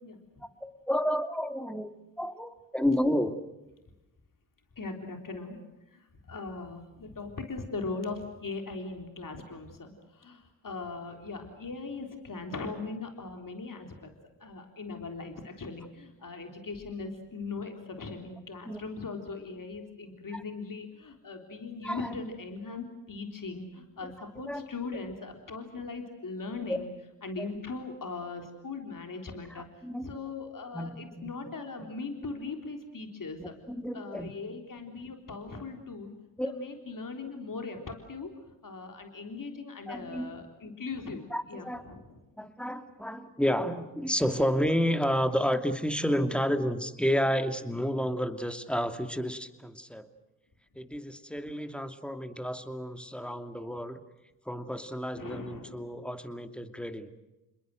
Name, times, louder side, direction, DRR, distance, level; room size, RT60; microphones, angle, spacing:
voice 1, 0.6-3.4 18.6-18.8 20.3-20.4 21.8-22.1 24.5-24.6 26.7-26.8 27.4-27.5 29.5-30.2 30.7-31.3 33.4-34.3 36.4-36.5 39.9-40.3 41.3-41.8 42.4-50.1 50.7-54.0 54.5-57.2, equal, ahead, 8 dB, 2.6 m, -31 dB
voice 2, 4.8-5.6 5.9-14.1 14.4-26.9 27.2-29.7 30.0-33.5 33.9-36.1 36.5-38.3 38.6-42.0 55.2-55.9, left 3 dB, 45° left, 4 dB, 3.8 m, -39 dB
27.5 x 21.5 x 7.8 m, 0.98 s
supercardioid pair, 45°, 44 cm